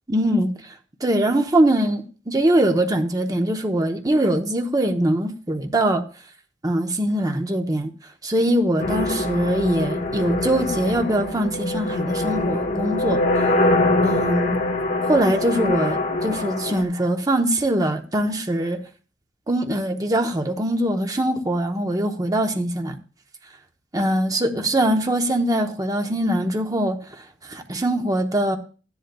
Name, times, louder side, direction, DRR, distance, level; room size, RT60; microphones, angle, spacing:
voice 1, 0.1-0.5 1.0-6.0 6.6-7.9 8.2-13.2 14.0-14.6 15.1-18.8 19.5-23.0 23.9-27.0 27.5-28.6, right 1 dB, 20° right, 0.9 m, -22 dB
sound 1, 8.8-16.8, left 2 dB, 45° left, 1.2 m, -23 dB
13.5 x 10.5 x 2.3 m
head